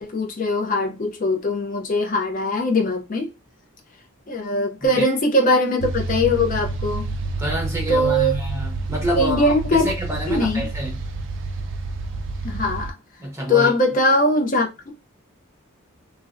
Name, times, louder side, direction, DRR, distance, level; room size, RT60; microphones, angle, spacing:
voice 1, 0.0-3.3 4.3-7.1 7.9-8.3 9.2-9.9 10.3-10.7 12.4-12.9 13.5-14.9, left 1 dB, 35° left, 0.5 m, -21 dB
sound 1, 5.8-12.9, right 3 dB, 55° right, 0.3 m, -29 dB
voice 2, 7.4-11.0 13.2-13.7, equal, 15° right, 0.7 m, -27 dB
2.5 x 2.1 x 2.4 m
head